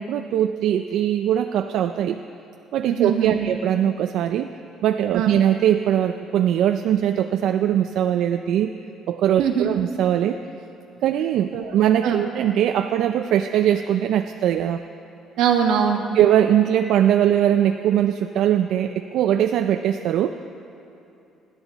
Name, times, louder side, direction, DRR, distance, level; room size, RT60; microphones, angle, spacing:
voice 1, 0.0-2.2 2.7-4.5 4.8-8.7 9.1-10.4 11.0-14.8 16.1-20.4, right 10 dB, 60° right, 7 dB, 0.4 m, -21 dB
voice 2, 2.8-3.5 5.1-5.3 9.4-9.8 11.5-11.7 12.0-12.2 15.4-16.0, right 8 dB, 80° right, 2 dB, 1.7 m, -22 dB
28.5 x 11.0 x 4.1 m, 2.8 s
cardioid pair, 170°, 0 cm